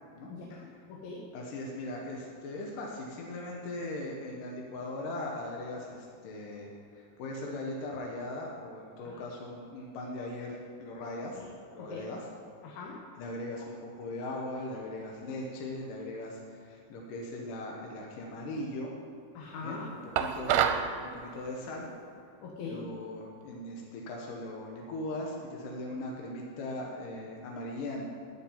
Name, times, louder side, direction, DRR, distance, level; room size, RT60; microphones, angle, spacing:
voice 1, 0.3-1.2 9.0-9.2 11.4-11.5 11.8-12.0 12.6-13.0 19.3-19.9 22.4-22.9, left 4 dB, 85° left, -1 dB, 3.2 m, -42 dB
voice 2, 1.3-11.4 11.7-12.2 13.2-18.9 19.6-21.9 22.6-28.1, left 1 dB, 70° left, -1 dB, 2.9 m, -39 dB
sound 1, 20.2-20.9, right 9 dB, 90° right, 2.6 m, -26 dB
10.5 x 9.6 x 9.4 m, 2.5 s
omnidirectional pair, 4.2 m